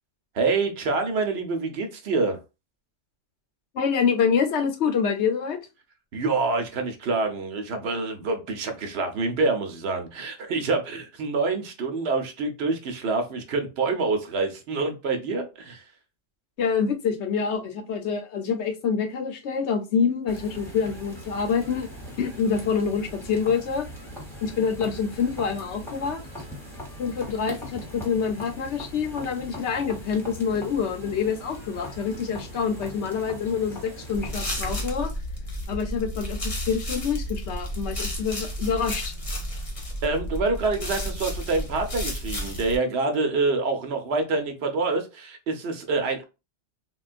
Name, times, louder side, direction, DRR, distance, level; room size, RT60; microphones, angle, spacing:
voice 1, 0.3-2.4 6.1-15.8 40.0-46.2, right 3 dB, 65° right, 5 dB, 0.9 m, -26 dB
voice 2, 3.7-5.6 16.6-21.9 22.2-23.9 24.4-26.2 27.0-35.1 35.7-39.1, left 6 dB, 70° left, 6 dB, 0.9 m, -26 dB
sound 1, 20.3-34.9, equal, ahead, 1.0 m, -40 dB
sound 2, 34.1-42.8, equal, 30° left, 0.9 m, -32 dB
3.6 x 2.3 x 2.4 m, 0.28 s
omnidirectional pair, 1.2 m